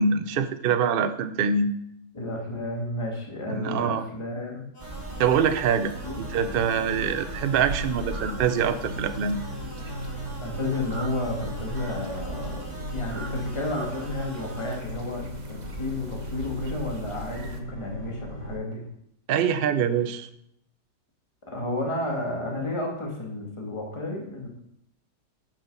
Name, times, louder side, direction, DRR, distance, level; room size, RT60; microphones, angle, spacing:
voice 1, 0.0-1.7 3.5-4.0 5.2-9.4 19.3-20.3, right 6 dB, 80° right, 10 dB, 0.5 m, -24 dB
voice 2, 2.1-4.6 6.0-6.2 10.4-18.8 21.5-24.5, left 2 dB, 15° left, 0 dB, 1.8 m, -32 dB
sound 1, 4.7-14.8, equal, 30° left, 3.7 m, -43 dB
sound 2, 4.8-17.6, right 3 dB, 35° right, 0.8 m, -39 dB
sound 3, 5.9-18.6, equal, 55° left, 3.0 m, -38 dB
9.4 x 6.6 x 5.4 m, 0.74 s
omnidirectional pair, 1.9 m